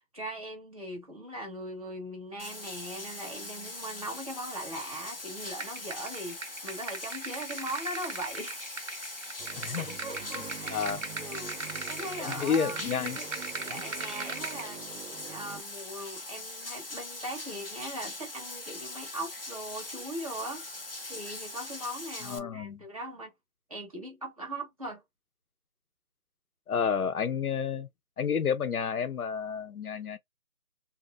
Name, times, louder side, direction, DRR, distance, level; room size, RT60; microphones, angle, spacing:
voice 1, 0.1-8.7 9.8-10.9 11.1-13.3 13.6-20.6 21.1-23.3 23.7-25.0, right 1 dB, 25° right, 0.9 m, -40 dB
Bathtub (filling or washing), 2.4-22.4, left 2 dB, 45° left, 0.5 m, -41 dB
sound 1, 5.6-14.6, right 4 dB, 60° right, 0.9 m, -40 dB
sound 2, 9.4-15.6, right 8 dB, 90° right, 0.7 m, -46 dB
voice 2, 9.6-9.9 10.3-11.0 12.2-13.2 13.7-13.8 22.2-22.8 26.7-27.9 28.2-30.2, left 7 dB, 90° left, 0.8 m, -30 dB
2.8 x 2.0 x 3.0 m
figure-of-eight pair, 170°, 43 cm